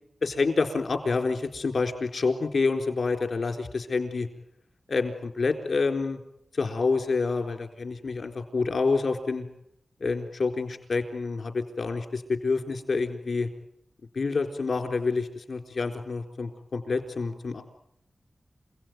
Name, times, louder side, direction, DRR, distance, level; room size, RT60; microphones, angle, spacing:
voice 1, 0.2-4.3 4.9-6.2 6.5-9.4 10.0-13.5 14.1-17.6, left 4 dB, 70° left, 6 dB, 4.0 m, -28 dB
29.0 x 17.5 x 9.4 m, 0.80 s
wide cardioid pair, 75°, 0 cm